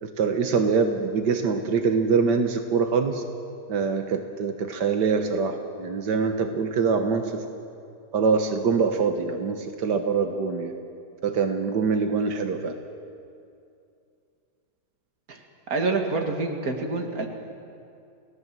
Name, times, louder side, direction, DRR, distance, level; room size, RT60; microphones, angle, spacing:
voice 1, 0.0-3.2 3.7-7.4 8.1-10.7 11.2-12.7, right 5 dB, 90° right, 5 dB, 1.9 m, -24 dB
voice 2, 15.7-17.3, right 3 dB, 60° right, 3 dB, 2.6 m, -27 dB
29.5 x 17.5 x 7.7 m, 2.5 s
omnidirectional pair, 1.8 m